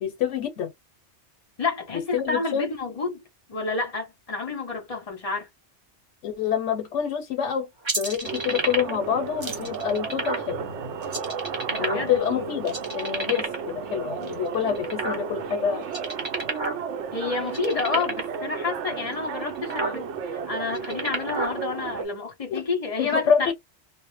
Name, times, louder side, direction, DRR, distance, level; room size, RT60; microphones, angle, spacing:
voice 1, 0.0-0.7 1.9-2.7 6.2-7.7 8.0-10.6 11.8-15.8 22.5-22.6 23.0-23.5, left 8 dB, 90° left, 0.9 m, -27 dB
voice 2, 1.6-3.2 3.5-5.5 11.7-12.7 17.1-20.1 20.5-23.5, left 4 dB, 35° left, 0.7 m, -29 dB
sound 1, 7.8-9.0 9.4-10.5 11.0-12.3 12.6-13.7 14.2-15.5 15.8-16.8 17.1-17.2 17.5-18.3 19.0-19.1 19.5-20.0 20.6-21.5, right 2 dB, 30° right, 0.7 m, -30 dB
sound 2, 8.2-22.1, right 6 dB, 80° right, 0.9 m, -34 dB
2.1 x 2.0 x 2.9 m
omnidirectional pair, 1.2 m